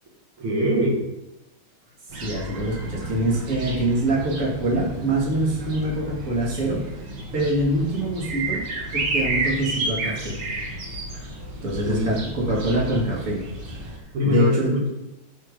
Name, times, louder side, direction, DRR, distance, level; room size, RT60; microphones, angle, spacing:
voice 1, 0.4-1.0 11.8-12.1 14.1-14.9, left 2 dB, 75° right, -2 dB, 3.0 m, -22 dB
sound 1, 2.1-14.0, right 2 dB, 55° right, 2.2 m, -31 dB
voice 2, 2.2-6.8 7.3-8.6 8.9-10.4 11.6-13.8 14.2-14.8, right 1 dB, 35° right, -4 dB, 2.9 m, -24 dB
10.5 x 6.6 x 5.0 m, 0.95 s
omnidirectional pair, 2.4 m